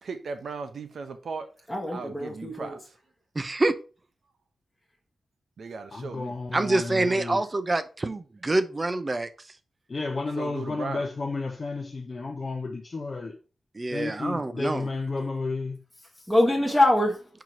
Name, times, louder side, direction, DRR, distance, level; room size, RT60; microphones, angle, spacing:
voice 1, 0.0-1.5 1.9-2.8 5.6-6.4 10.4-11.0, right 4 dB, 65° right, 0.9 m, -37 dB
voice 2, 1.7-2.8 16.3-17.3, left 1 dB, 5° left, 1.1 m, -23 dB
voice 3, 3.3-3.8 6.5-9.3 13.7-14.9, right 2 dB, 25° right, 0.6 m, -26 dB
voice 4, 5.9-7.4 9.9-13.4 13.9-15.8, left 3 dB, 35° left, 0.7 m, -32 dB
4.6 x 4.6 x 5.2 m
wide cardioid pair, 125°, 0 cm